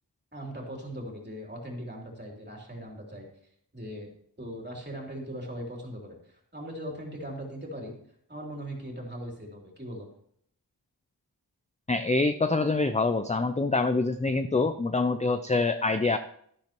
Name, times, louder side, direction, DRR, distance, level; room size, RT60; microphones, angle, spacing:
voice 1, 0.3-3.3 3.7-4.1 4.4-7.9 8.3-10.1, equal, 25° right, -1 dB, 3.1 m, -39 dB
voice 2, 11.9-16.2, left 3 dB, 20° left, 9 dB, 0.4 m, -25 dB
12.0 x 11.0 x 3.0 m, 0.66 s
wide cardioid pair, 80°, 41 cm